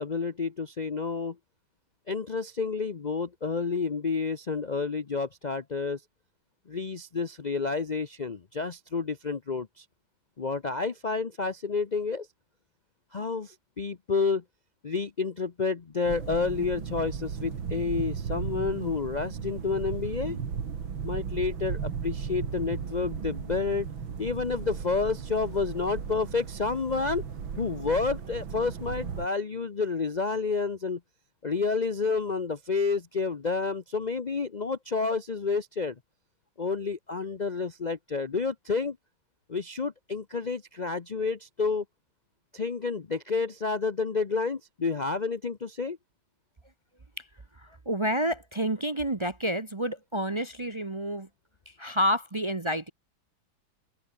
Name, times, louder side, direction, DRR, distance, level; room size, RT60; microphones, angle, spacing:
voice 1, 0.0-1.4 2.1-6.0 6.7-9.8 10.4-12.3 13.1-14.4 14.8-20.4 21.0-23.9 24.2-27.2 27.6-31.0 31.4-36.0 36.6-39.0 39.5-41.8 42.5-46.0, left 4 dB, 80° left, 0.4 m, -30 dB
sound 1, 16.1-29.3, right 7 dB, 80° right, 2.9 m, -36 dB
voice 2, 47.6-51.3 51.8-52.9, equal, 25° right, 0.6 m, -29 dB
open air
omnidirectional pair, 2.2 m